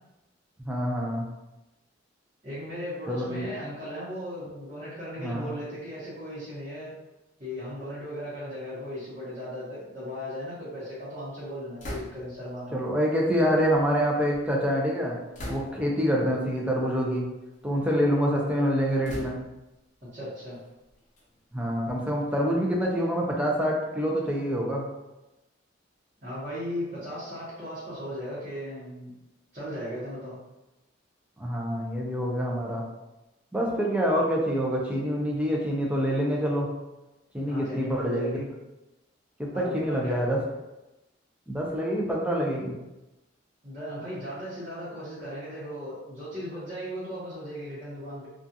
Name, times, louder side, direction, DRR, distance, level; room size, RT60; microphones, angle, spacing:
voice 1, 0.6-1.3 3.1-3.5 5.2-5.5 12.7-15.2 15.5-17.3 17.6-19.4 21.5-24.8 31.4-32.8 33.5-36.7 37.3-38.3 39.4-40.4 41.5-42.8, equal, 5° right, -2 dB, 0.5 m, -26 dB
voice 2, 2.4-6.9 7.4-12.8 20.1-20.6 26.2-29.1 29.5-30.4 37.4-38.5 39.5-40.3 43.6-48.3, equal, 35° right, -13 dB, 1.0 m, -37 dB
sound 1, 11.8-12.5 13.4-14.5 15.3-16.0 16.8-17.1 17.5-18.2 19.0-19.8 20.5-22.5, left 1 dB, 40° left, 0.6 m, -42 dB
2.4 x 2.4 x 2.7 m, 0.97 s
head